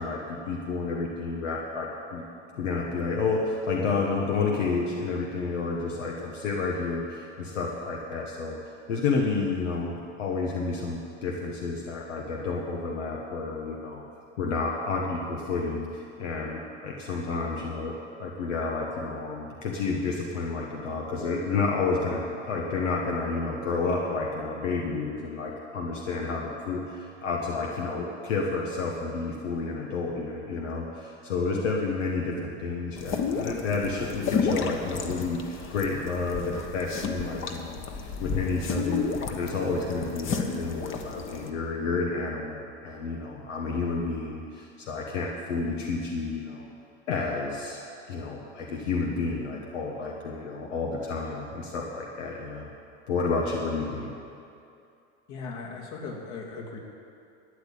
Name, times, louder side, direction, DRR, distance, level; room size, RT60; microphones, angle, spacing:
voice 1, 0.0-2.2 2.5-8.6 8.9-14.0 14.4-39.0 39.3-46.7 47.1-47.8 48.1-52.7 53.1-54.1, left 4 dB, 85° left, -1 dB, 1.6 m, -30 dB
sound 1, 33.0-41.5, left 5 dB, 35° left, 1.3 m, -32 dB
voice 2, 55.3-56.8, left 4 dB, 60° left, -1 dB, 2.9 m, -38 dB
13.0 x 9.0 x 8.6 m, 2.6 s
hypercardioid pair, 110°, 36 cm